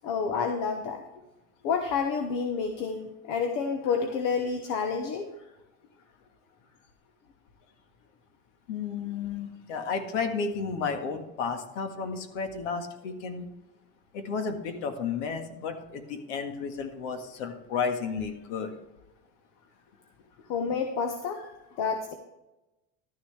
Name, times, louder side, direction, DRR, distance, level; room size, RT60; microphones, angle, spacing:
voice 1, 0.0-1.0 1.6-5.3 20.5-22.1, left 5 dB, 45° left, 6 dB, 1.1 m, -29 dB
voice 2, 8.7-13.5 14.1-18.7, left 5 dB, 90° left, 6 dB, 1.7 m, -32 dB
12.5 x 9.9 x 3.3 m, 0.97 s
cardioid pair, 170°, 35 cm